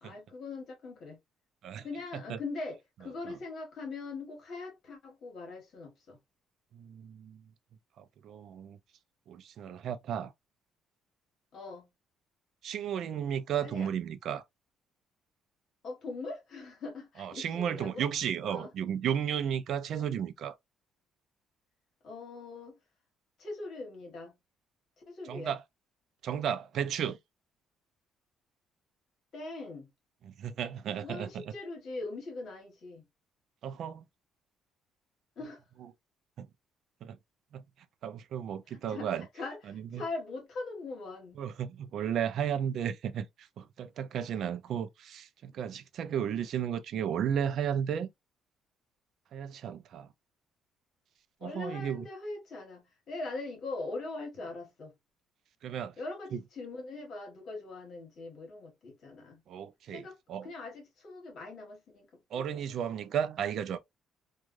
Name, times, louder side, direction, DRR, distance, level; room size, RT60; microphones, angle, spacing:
voice 1, 0.0-1.2 1.8-6.2 11.5-11.9 13.6-13.9 15.8-18.1 18.4-18.7 22.0-22.8 23.4-24.3 25.0-25.5 29.3-29.9 31.0-33.0 35.4-35.6 38.7-41.4 51.4-54.9 56.0-59.4 59.9-62.1 62.3-62.6, left 3 dB, 50° left, 1.2 m, -41 dB
voice 2, 6.7-7.4 8.0-8.8 9.3-10.3 12.6-14.4 17.2-20.5 25.3-25.6 26.2-27.2 30.3-31.4 33.6-34.0 36.4-36.5 37.0-37.2 37.5-37.6 38.0-39.3 39.9-40.0 41.4-43.3 43.6-48.1 49.3-50.1 51.4-52.1 55.6-55.9 56.3-56.4 59.5-60.5 62.3-63.8, right 8 dB, 55° right, 0.3 m, -34 dB
3.1 x 2.3 x 2.4 m
cardioid pair, 155°, 0 cm